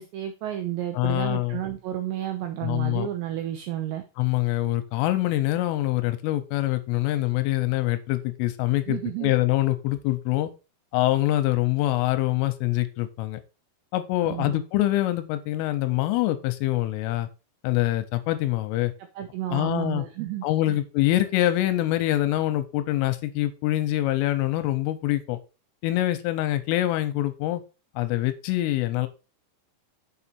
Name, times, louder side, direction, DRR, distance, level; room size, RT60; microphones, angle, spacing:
voice 1, 0.0-4.0 8.9-9.3 14.2-14.6 19.2-20.8, right 12 dB, 85° right, 7 dB, 2.5 m, -31 dB
voice 2, 1.0-1.6 2.6-3.1 4.2-10.5 10.9-13.4 13.9-17.3 17.6-18.9 19.5-20.0 20.4-25.4 25.8-27.6 28.0-29.1, left 16 dB, 85° left, 10 dB, 3.1 m, -25 dB
7.1 x 6.0 x 4.3 m, 0.31 s
omnidirectional pair, 6.0 m